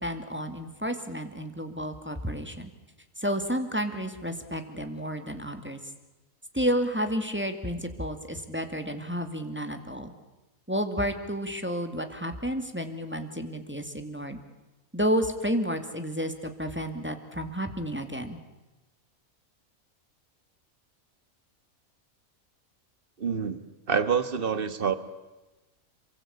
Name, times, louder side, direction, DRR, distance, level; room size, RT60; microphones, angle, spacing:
voice 1, 0.0-2.7 3.2-5.8 6.5-10.1 10.7-14.4 14.9-18.4, equal, 10° right, 6 dB, 2.2 m, -31 dB
voice 2, 23.2-23.6 23.9-25.0, right 6 dB, 40° right, 12 dB, 1.7 m, -26 dB
27.5 x 23.0 x 8.7 m, 1.1 s
omnidirectional pair, 1.4 m